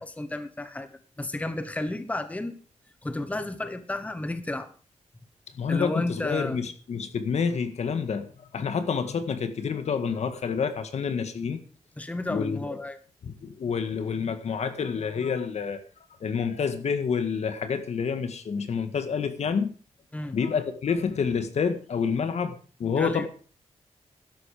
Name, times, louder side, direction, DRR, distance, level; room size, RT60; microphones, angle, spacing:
voice 1, 0.0-2.6 3.0-4.7 5.7-6.6 12.0-13.0 20.1-20.4 23.0-23.3, left 2 dB, 10° left, 10 dB, 1.1 m, -32 dB
voice 2, 5.6-11.6 12.3-12.7 13.2-15.8 16.2-19.7 20.3-23.3, left 6 dB, 70° left, 9 dB, 1.9 m, -28 dB
13.0 x 11.0 x 5.2 m, 0.39 s
wide cardioid pair, 130°, 12 cm